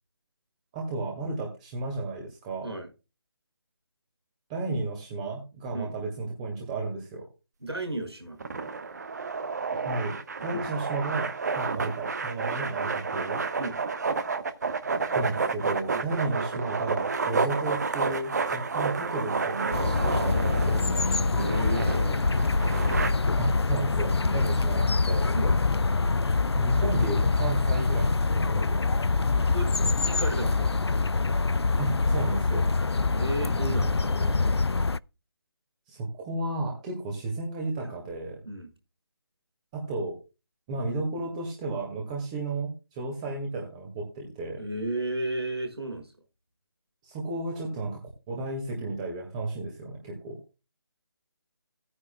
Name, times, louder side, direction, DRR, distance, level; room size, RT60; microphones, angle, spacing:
voice 1, 0.7-2.7 4.5-7.2 9.8-10.2 10.4-13.4 15.2-21.1 23.4-25.2 26.5-28.8 31.8-32.6 33.7-34.3 35.9-38.4 39.7-40.2 40.7-44.6 47.0-48.0 48.3-50.4, right 2 dB, 15° right, 1.9 m, -33 dB
voice 2, 7.6-8.4 10.5-10.7 13.6-13.8 15.9-16.1 21.4-22.2 24.2-24.5 25.3-25.6 26.8-26.9 29.4-29.7 30.0-30.9 33.2-34.4 38.5-38.7 44.6-46.1, right 1 dB, 80° right, 5.4 m, -34 dB
sound 1, 8.4-23.1, right 4 dB, 40° right, 1.2 m, -30 dB
sound 2, 19.7-35.0, left 3 dB, 85° left, 0.4 m, -25 dB
16.0 x 9.8 x 2.2 m
figure-of-eight pair, 150°, 13 cm